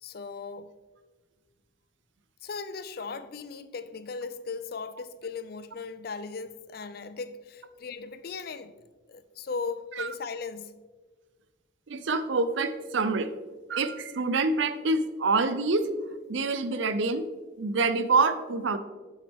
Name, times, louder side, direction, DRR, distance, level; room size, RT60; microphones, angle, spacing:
voice 1, 0.0-0.7 2.4-8.7 9.1-10.8, left 4 dB, 50° left, 0.4 m, -37 dB
voice 2, 11.9-13.3 13.7-15.9 16.3-17.2 17.6-18.8, right 3 dB, 70° right, 0.6 m, -26 dB
7.4 x 7.0 x 3.5 m
head